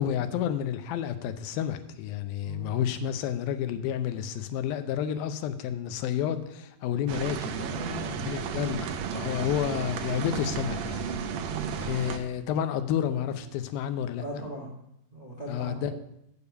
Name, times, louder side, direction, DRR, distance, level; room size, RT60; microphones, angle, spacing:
voice 1, 0.0-7.5 8.2-11.0 11.9-14.2 15.5-16.0, left 9 dB, 80° left, 10 dB, 2.5 m, -30 dB
voice 2, 2.4-2.8 7.5-8.7 11.4-11.7 14.2-14.7 15.1-16.0, right 1 dB, 25° right, -3 dB, 0.8 m, -39 dB
sound 1, 7.1-12.2, right 6 dB, 90° right, 1.5 m, -33 dB
6.9 x 6.9 x 8.0 m, 0.77 s
omnidirectional pair, 4.2 m